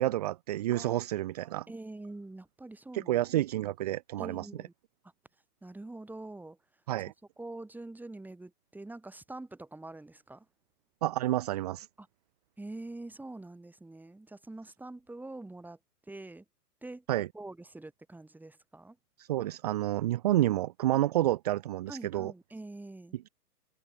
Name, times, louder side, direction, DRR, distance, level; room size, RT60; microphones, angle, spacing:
voice 1, 0.0-1.7 2.9-4.5 6.9-7.1 11.0-11.9 17.1-17.3 19.2-22.3, right 14 dB, 25° right, 0.6 m, -29 dB
voice 2, 1.7-3.2 4.2-4.7 5.6-6.6 7.4-10.5 12.0-12.1 12.6-15.8 16.1-16.5 16.8-17.0 17.3-19.0 21.9-23.2, right 2 dB, 5° right, 5.2 m, -45 dB
figure-of-eight pair, 125°, 47 cm